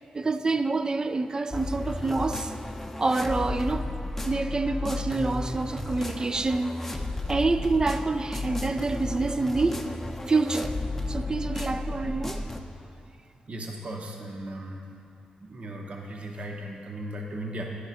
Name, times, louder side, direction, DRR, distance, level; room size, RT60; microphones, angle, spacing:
voice 1, 0.1-2.5 3.0-3.9 4.3-7.0 7.3-9.9 10.3-10.7 11.1-12.5, right 3 dB, 25° right, 0.3 m, -27 dB
sound 1, 1.5-12.6, left 2 dB, 10° left, 0.6 m, -33 dB
voice 2, 13.5-14.9 15.4-17.6, right 1 dB, 50° right, 0.8 m, -37 dB
11.0 x 4.9 x 4.2 m
cardioid pair, 75°, 3 cm